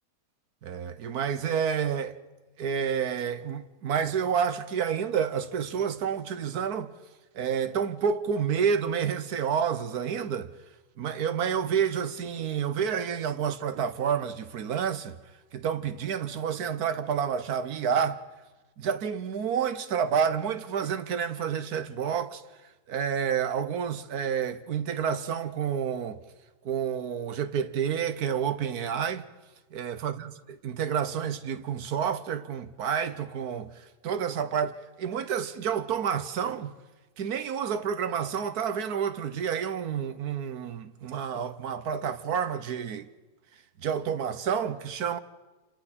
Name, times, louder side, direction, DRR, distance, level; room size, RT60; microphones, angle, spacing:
voice 1, 0.6-2.2 2.6-6.9 7.3-10.5 11.0-15.2 15.5-18.2 18.8-22.4 22.9-26.2 26.6-29.2 29.7-30.3 30.6-36.7 37.2-43.1 43.8-45.2, right 7 dB, 70° right, 1.4 m, -29 dB
29.0 x 27.0 x 4.3 m
omnidirectional pair, 1.7 m